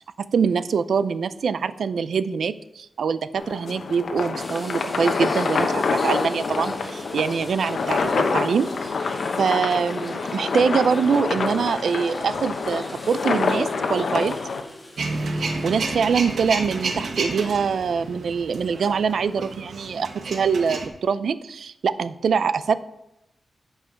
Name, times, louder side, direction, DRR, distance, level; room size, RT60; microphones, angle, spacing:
voice 1, 0.3-8.9 9.4-14.4 15.4-22.7, right 6 dB, 85° right, 15 dB, 0.5 m, -24 dB
sound 1, 3.3-14.6, left 4 dB, 70° left, 1.0 m, -26 dB
sound 2, 4.3-16.6 17.0-17.1 19.4-19.6, left 1 dB, 10° left, 1.7 m, -40 dB
Male speech man speaking / Vehicle / Engine starting, 15.0-20.9, right 3 dB, 65° right, 1.2 m, -30 dB
10.5 x 5.6 x 5.8 m, 0.86 s
wide cardioid pair, 145°, 0 cm